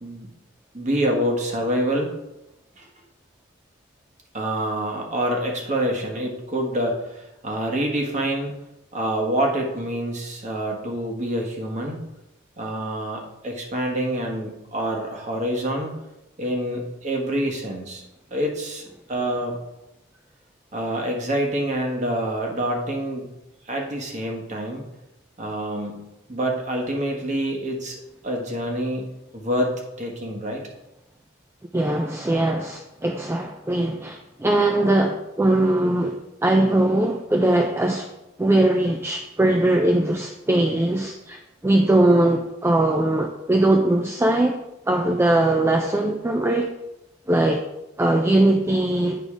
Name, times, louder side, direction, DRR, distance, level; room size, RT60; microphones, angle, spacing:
voice 1, 0.7-2.1 2.8-2.9 4.3-8.5 8.9-12.0 12.6-15.9 16.4-18.0 18.3-19.6 20.7-23.3 23.7-24.8 25.4-26.0 26.3-28.0 28.2-29.1 29.3-30.6, right 1 dB, 35° right, 1 dB, 1.4 m, -26 dB
voice 2, 31.7-38.1 38.4-44.6 44.9-46.7 47.3-47.6 48.0-49.2, right 1 dB, 10° right, 3 dB, 0.4 m, -20 dB
9.1 x 4.0 x 4.9 m, 0.92 s
head